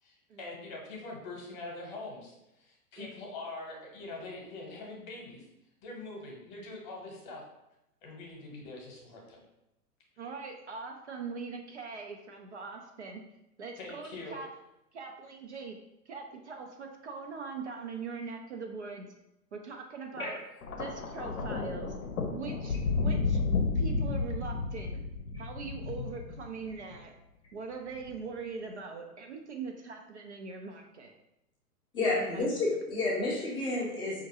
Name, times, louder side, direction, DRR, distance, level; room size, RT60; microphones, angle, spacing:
voice 1, 0.0-5.4 5.8-7.4 8.0-9.4 13.8-14.4, left 2 dB, 30° left, -1 dB, 0.9 m, -43 dB
voice 2, 10.2-13.2 13.6-14.5 14.9-15.8 16.1-19.1 19.5-20.4 20.8-21.9 22.3-23.4 23.7-25.0 25.4-27.1 27.5-31.1 32.1-32.6, right 4 dB, 50° right, 2 dB, 0.5 m, -41 dB
Thunder, 20.6-27.0 27.9-28.2, left 4 dB, 65° left, 0.7 m, -32 dB
voice 3, 31.9-34.2, left 2 dB, 10° left, -6 dB, 0.6 m, -30 dB
5.1 x 2.5 x 2.7 m, 0.87 s
figure-of-eight pair, 110°, 46 cm